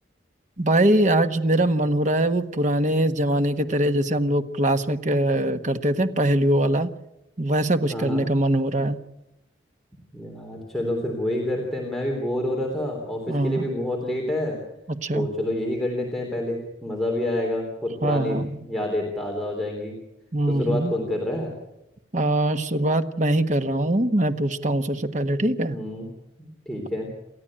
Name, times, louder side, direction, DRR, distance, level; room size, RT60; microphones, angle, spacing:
voice 1, 0.6-6.9 7.4-9.0 13.3-13.7 15.0-15.3 18.0-18.6 20.3-20.9 22.1-25.8, right 1 dB, 40° right, 8 dB, 1.4 m, -22 dB
voice 2, 7.9-8.3 10.1-14.6 15.1-20.0 20.5-21.5 25.7-26.1 26.4-27.1, left 1 dB, ahead, -1 dB, 3.6 m, -28 dB
29.0 x 14.0 x 8.8 m, 0.89 s
head